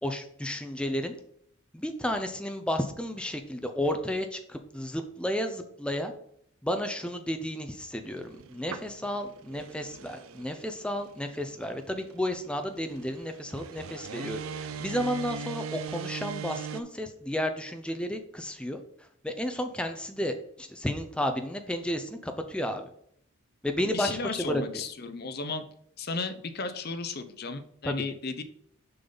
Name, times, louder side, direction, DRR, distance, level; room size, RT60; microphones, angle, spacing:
voice 1, 0.0-1.1 1.7-6.1 6.6-18.8 19.2-22.8 23.6-24.6 27.8-28.0, equal, 5° left, 6 dB, 0.6 m, -32 dB
sound 1, 8.1-16.8, right 5 dB, 75° right, 0.5 m, -41 dB
voice 2, 23.9-25.7 26.0-28.4, left 4 dB, 45° left, 10 dB, 0.7 m, -34 dB
6.7 x 5.5 x 3.9 m, 0.67 s
head